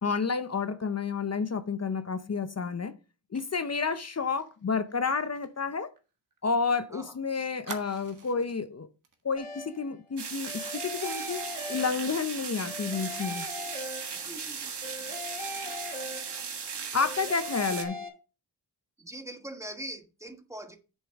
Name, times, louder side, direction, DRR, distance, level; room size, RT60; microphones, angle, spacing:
voice 1, 0.0-2.9 3.3-5.9 6.4-8.9 9.2-13.5 16.9-18.0, left 5 dB, 35° left, 0.6 m, -30 dB
Fire, 3.3-6.8 7.0-7.1 7.6-8.6 9.0-9.2 9.5-9.8, right 4 dB, 45° right, 1.7 m, -47 dB
sound 1, 9.4-9.9 10.5-12.3 12.6-14.4 14.8-16.6 17.0-18.1, left 2 dB, 15° left, 2.7 m, -40 dB
sound 2, 10.2-17.8, right 6 dB, 60° right, 1.5 m, -37 dB
voice 2, 14.1-14.7 19.0-20.8, right 1 dB, 5° right, 1.2 m, -42 dB
8.2 x 7.3 x 3.5 m
wide cardioid pair, 100°, 45 cm